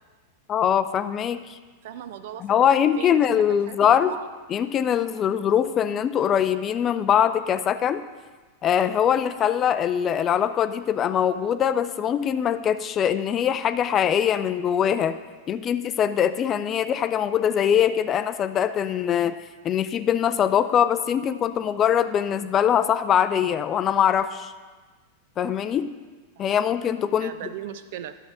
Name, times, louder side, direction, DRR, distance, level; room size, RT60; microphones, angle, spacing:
voice 1, 0.5-1.4 2.4-4.1 4.5-8.0 8.6-15.2 15.5-19.4 19.6-24.5 25.4-25.9 26.4-27.3, left 9 dB, 30° left, 12 dB, 0.4 m, -22 dB
voice 2, 1.8-2.6 3.0-4.2 26.4-26.6 27.1-28.1, right 10 dB, 55° right, 12 dB, 0.5 m, -38 dB
11.5 x 7.3 x 3.7 m, 1.3 s
figure-of-eight pair, 90°, 0 cm